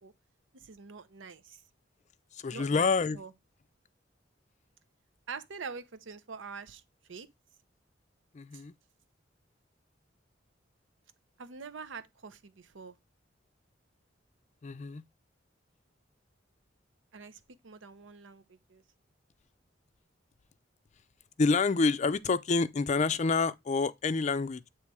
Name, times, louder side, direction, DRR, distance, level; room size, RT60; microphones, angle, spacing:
voice 1, 0.5-1.6 2.5-3.3 5.3-6.8 7.1-7.3 11.4-13.0 17.1-18.8, right 5 dB, 90° right, 0.7 m, -45 dB
voice 2, 2.4-3.2 8.3-8.7 14.6-15.0 21.4-24.7, left 4 dB, 40° left, 0.4 m, -28 dB
8.3 x 3.1 x 4.7 m
head